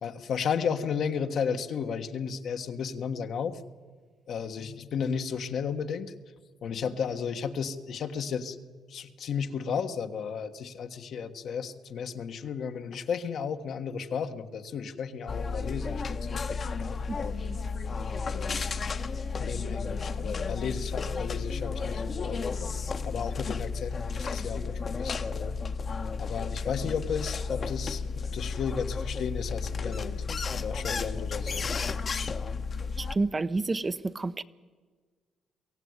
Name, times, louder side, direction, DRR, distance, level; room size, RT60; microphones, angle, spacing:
voice 1, 0.0-3.6 4.3-6.1 6.6-8.6 8.9-16.4 17.2-17.5 18.3-18.6 19.4-25.6 26.2-31.7, left 6 dB, 65° left, 1.4 m, -34 dB
sound 1, 15.3-33.2, left 4 dB, 45° left, 1.1 m, -33 dB
voice 2, 33.0-34.4, right 3 dB, 25° right, 0.7 m, -30 dB
23.0 x 16.0 x 9.6 m
cardioid pair, 90°, 0 cm